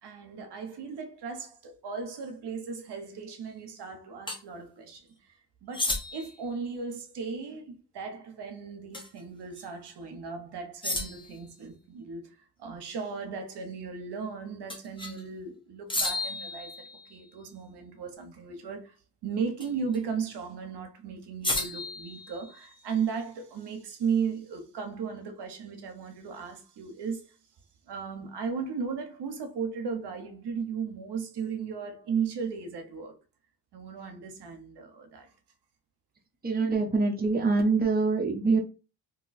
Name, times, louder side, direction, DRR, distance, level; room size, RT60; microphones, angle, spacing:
voice 1, 0.0-5.1 5.6-19.0 19.2-27.4 27.9-33.2 33.7-35.3, right 6 dB, 65° right, 0.9 m, -36 dB
sound 1, 4.3-4.4 5.7-6.4 8.9-9.2 9.6-9.7 10.8-11.4 14.7-15.2 15.9-17.3 19.6-20.0 21.4-22.8, left 2 dB, 10° left, 0.9 m, -33 dB
voice 2, 36.4-38.6, right 3 dB, 20° right, 0.8 m, -24 dB
2.7 x 2.2 x 4.0 m
cardioid pair, 80°, 44 cm